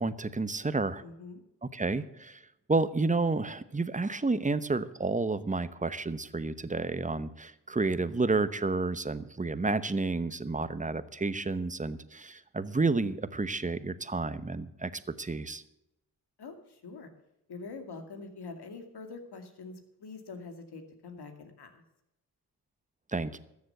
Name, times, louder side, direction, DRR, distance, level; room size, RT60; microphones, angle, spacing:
voice 1, 0.0-1.0 1.7-2.4 2.7-14.9 15.2-15.6 23.1-23.4, right 3 dB, 20° right, 14 dB, 0.9 m, -30 dB
voice 2, 1.0-1.4 11.8-12.0 16.4-17.1 17.5-21.8, left 4 dB, 70° left, 6 dB, 2.4 m, -45 dB
13.5 x 7.3 x 7.9 m, 0.85 s
cardioid pair, 60°, 41 cm